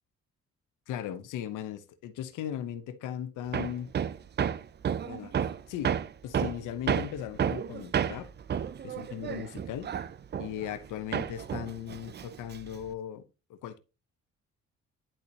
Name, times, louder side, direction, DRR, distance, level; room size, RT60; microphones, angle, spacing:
voice 1, 0.9-3.9 4.9-8.3 8.8-9.9 10.4-13.2 13.5-13.8, left 10 dB, 85° left, 0.9 m, -38 dB
Hammer, 3.5-10.9 11.1-12.9, right 8 dB, 35° right, 0.5 m, -31 dB
10.5 x 4.1 x 2.8 m
cardioid pair, 90°, 30 cm